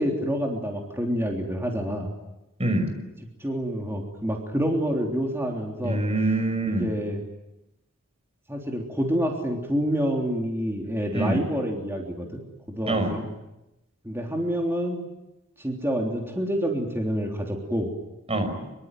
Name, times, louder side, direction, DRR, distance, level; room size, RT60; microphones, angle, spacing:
voice 1, 0.0-2.1 3.4-6.0 6.7-7.2 8.5-12.4 12.7-13.3 14.0-15.0 15.6-17.9, equal, 10° right, 1 dB, 3.4 m, -27 dB
voice 2, 2.6-2.9 5.8-6.9 11.1-11.4 12.9-13.2 18.3-18.6, right 2 dB, 30° right, 6 dB, 5.8 m, -25 dB
25.5 x 24.0 x 9.3 m, 0.94 s
head